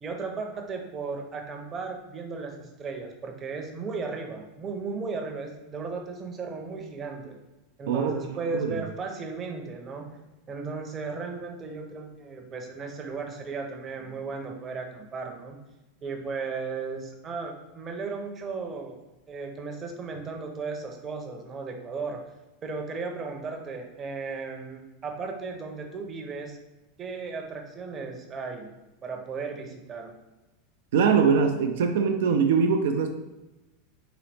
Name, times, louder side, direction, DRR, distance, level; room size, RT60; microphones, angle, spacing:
voice 1, 0.0-7.4 7.8-10.1 10.5-15.6 16.0-19.0 19.3-22.2 22.6-26.6 27.0-28.7 29.0-30.1, right 4 dB, 30° right, 3 dB, 0.7 m, -35 dB
voice 2, 7.9-8.8 30.9-33.1, right 6 dB, 80° right, 5 dB, 0.3 m, -23 dB
3.9 x 2.7 x 3.4 m, 1.0 s
supercardioid pair, 125°, 0 cm